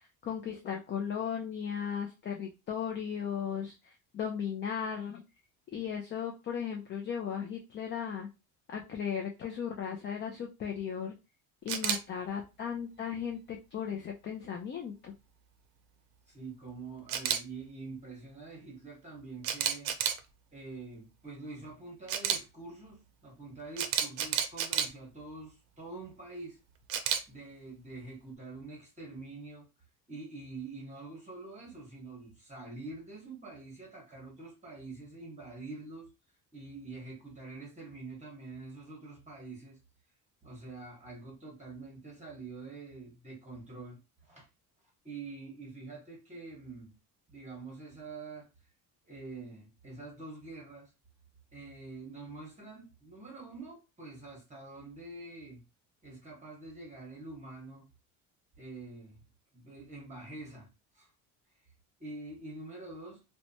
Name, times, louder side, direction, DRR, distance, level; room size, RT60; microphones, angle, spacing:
voice 1, 0.0-5.2 5.7-8.3 8.7-11.1 11.6-15.1, left 7 dB, 30° left, 0.4 m, -36 dB
Camera, 11.7-12.0 17.1-17.4 19.4-20.2 22.1-22.4 23.8-24.9 26.9-27.2, right 9 dB, 85° right, 0.6 m, -30 dB
voice 2, 16.3-19.9 20.5-26.6 27.3-29.7 30.1-36.1 36.5-39.8 40.4-44.5 45.0-47.0 47.3-48.5 49.1-50.9 51.5-55.6 56.0-57.9 58.6-59.3 59.5-61.1 62.0-63.2, right 3 dB, 20° right, 1.0 m, -46 dB
2.8 x 2.2 x 2.6 m
cardioid pair, 120°, 37 cm